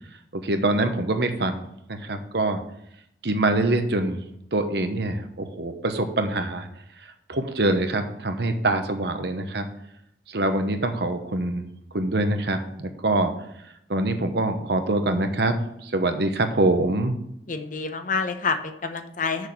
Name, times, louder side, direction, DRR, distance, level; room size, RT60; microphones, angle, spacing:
voice 1, 0.3-2.6 3.2-4.2 4.5-6.7 7.3-9.7 10.3-11.6 11.9-13.3 13.9-17.1, right 2 dB, 65° right, 7 dB, 1.0 m, -24 dB
voice 2, 17.5-19.5, left 4 dB, 50° left, 8 dB, 0.9 m, -28 dB
6.9 x 6.4 x 6.1 m, 0.75 s
head